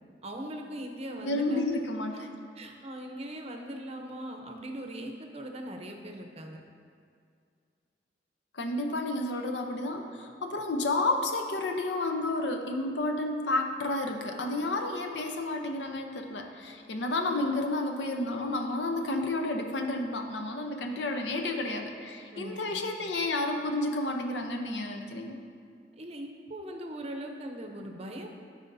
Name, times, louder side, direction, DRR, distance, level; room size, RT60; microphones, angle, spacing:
voice 1, 0.2-1.7 2.5-6.6 22.3-22.9 26.0-28.3, right 1 dB, 35° right, 3 dB, 0.7 m, -40 dB
voice 2, 1.2-2.3 8.5-25.4, left 2 dB, 80° left, 4 dB, 0.7 m, -31 dB
13.5 x 4.9 x 2.6 m, 2.3 s
head